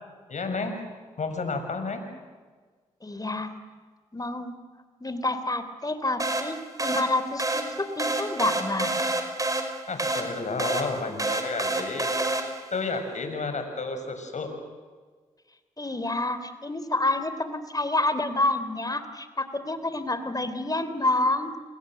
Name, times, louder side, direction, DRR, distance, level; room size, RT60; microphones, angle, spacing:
voice 1, 0.3-0.8 1.2-2.1 9.9-12.1 12.7-14.5, left 3 dB, 55° left, 7 dB, 6.7 m, -31 dB
voice 2, 3.0-3.5 4.1-4.6 5.0-9.0 15.8-21.6, left 2 dB, 25° left, 11 dB, 3.5 m, -28 dB
sound 1, 6.2-12.8, right 2 dB, 25° right, 5.5 m, -29 dB
29.5 x 22.0 x 8.0 m, 1.5 s
hypercardioid pair, 40°, 15 cm